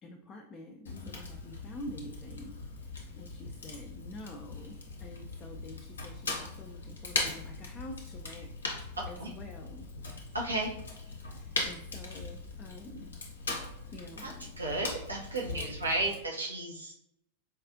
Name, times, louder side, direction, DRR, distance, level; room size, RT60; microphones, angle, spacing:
voice 1, 0.0-8.5 9.1-9.9 11.2-13.1 13.9-14.5 15.5-15.7, left 1 dB, 25° left, 2 dB, 0.4 m, -47 dB
Fire, 0.9-16.2, left 3 dB, 70° left, 0.6 m, -40 dB
voice 2, 10.3-10.7 14.2-14.3 14.6-16.9, right 2 dB, 80° right, -2 dB, 0.6 m, -33 dB
4.2 x 2.4 x 2.5 m, 0.78 s
figure-of-eight pair, 90°, 0 cm